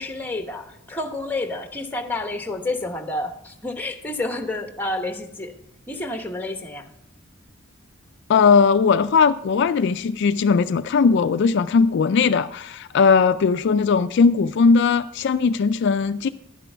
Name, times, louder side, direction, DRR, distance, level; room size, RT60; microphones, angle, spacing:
voice 1, 0.0-5.5 5.9-6.9, left 2 dB, 10° left, 5 dB, 1.0 m, -29 dB
voice 2, 8.3-16.3, left 5 dB, 60° left, 11 dB, 0.4 m, -18 dB
11.5 x 9.9 x 3.4 m, 0.84 s
head